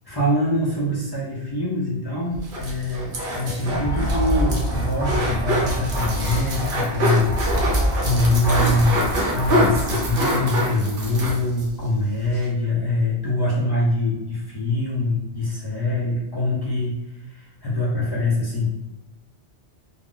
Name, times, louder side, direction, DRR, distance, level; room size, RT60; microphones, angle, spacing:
voice 1, 0.1-16.9 17.3-18.8, left 1 dB, 30° left, -7 dB, 0.5 m, -24 dB
sound 1, 2.3-11.7 12.0-12.1 12.3-12.5, right 1 dB, 55° right, 0.8 m, -26 dB
sound 2, 3.7-10.6, equal, 30° right, 0.5 m, -27 dB
sound 3, 5.8-6.6 7.6-8.3, right 3 dB, 80° left, 0.9 m, -33 dB
2.4 x 2.0 x 3.7 m, 0.91 s
omnidirectional pair, 1.1 m